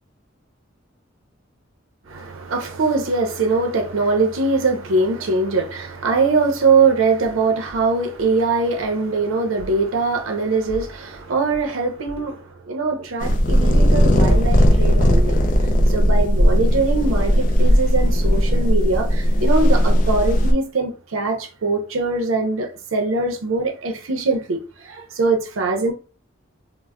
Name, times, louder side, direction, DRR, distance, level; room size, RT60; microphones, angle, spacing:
voice 1, 2.1-15.5 15.9-25.9, right 3 dB, 90° right, 0.5 m, -22 dB
sound 1, 13.2-20.5, equal, 40° left, 0.4 m, -16 dB
2.1 x 2.0 x 3.4 m
head